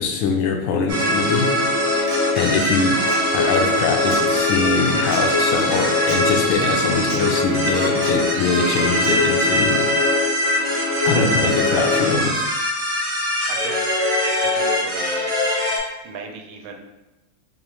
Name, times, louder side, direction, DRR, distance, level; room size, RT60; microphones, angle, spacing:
voice 1, 0.0-1.5 2.4-3.0 3.3-9.9 11.0-12.4, left 4 dB, 80° left, 3 dB, 1.3 m, -22 dB
sound 1, 0.9-15.8, left 1 dB, 55° right, 0.3 m, -21 dB
Human voice / Acoustic guitar, 1.6-9.6, right 2 dB, 75° right, 1.3 m, -34 dB
voice 2, 13.5-14.1 14.5-15.4 16.0-16.8, right 5 dB, 90° right, 3 dB, 1.4 m, -35 dB
4.8 x 2.4 x 3.0 m, 1.1 s
omnidirectional pair, 2.1 m